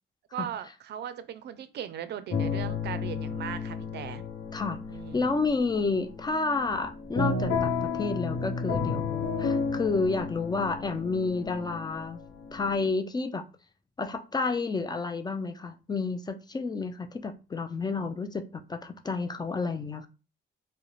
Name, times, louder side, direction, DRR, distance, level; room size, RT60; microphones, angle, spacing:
voice 1, 0.3-4.2 4.9-5.3, right 9 dB, 60° right, 0.4 m, -38 dB
sound 1, 2.3-12.9, left 4 dB, 70° left, 0.7 m, -32 dB
voice 2, 5.1-12.2 12.5-13.4 14.0-18.4 18.7-20.1, left 4 dB, 20° left, 0.3 m, -30 dB
2.4 x 2.1 x 3.0 m
cardioid pair, 90°, 20 cm